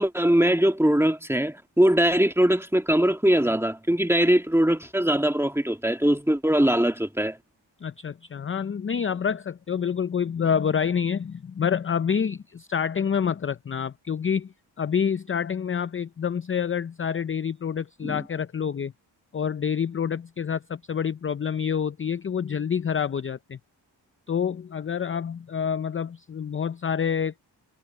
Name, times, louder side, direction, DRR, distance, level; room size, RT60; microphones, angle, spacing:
voice 1, 0.0-7.4 18.0-18.2, right 1 dB, 5° right, 2.0 m, -21 dB
voice 2, 7.8-18.9 19.3-23.6 24.3-27.5, left 7 dB, 30° left, 0.5 m, -27 dB
cardioid pair, 65°, 45 cm